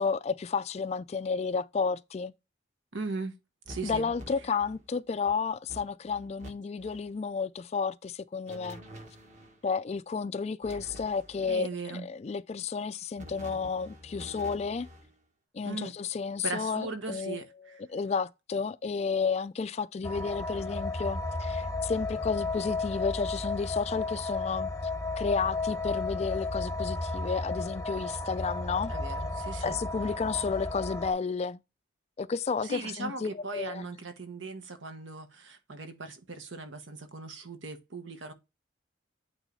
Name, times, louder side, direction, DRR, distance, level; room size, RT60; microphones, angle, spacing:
voice 1, 0.0-2.3 3.8-8.8 9.6-14.9 15.5-17.4 17.9-24.7 25.2-28.9 29.6-31.6 32.2-33.9, left 5 dB, 35° left, 0.3 m, -32 dB
voice 2, 2.9-3.4 3.7-4.1 11.5-12.1 15.6-15.9 16.4-17.8 28.9-29.8 32.6-38.3, right 3 dB, 80° right, 1.3 m, -39 dB
sound 1, 3.7-4.9 5.3-5.4 5.7-6.5 6.8-7.1 8.5-9.6 10.6-11.6 13.2-15.1, equal, 40° right, 1.4 m, -47 dB
sound 2, 20.0-31.1, left 3 dB, 15° left, 0.7 m, -33 dB
9.0 x 3.2 x 4.0 m
head